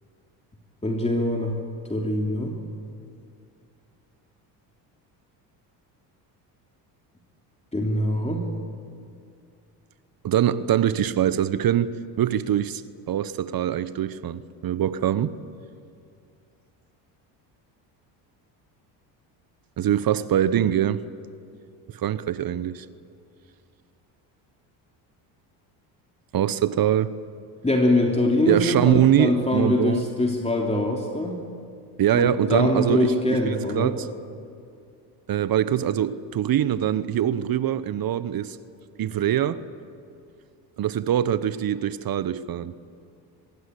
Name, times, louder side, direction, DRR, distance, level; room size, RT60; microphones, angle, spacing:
voice 1, 0.8-1.5 1.9-2.5 7.7-8.4 27.6-31.4 32.1-33.9, left 1 dB, 10° left, 3.3 m, -23 dB
voice 2, 10.2-12.8 13.1-15.3 19.8-21.0 21.9-22.9 26.3-27.1 28.5-30.1 32.0-34.0 35.3-38.6 39.0-39.6 40.8-42.8, right 10 dB, 45° right, 1.0 m, -23 dB
23.5 x 22.0 x 8.4 m
supercardioid pair, 75°, 50 cm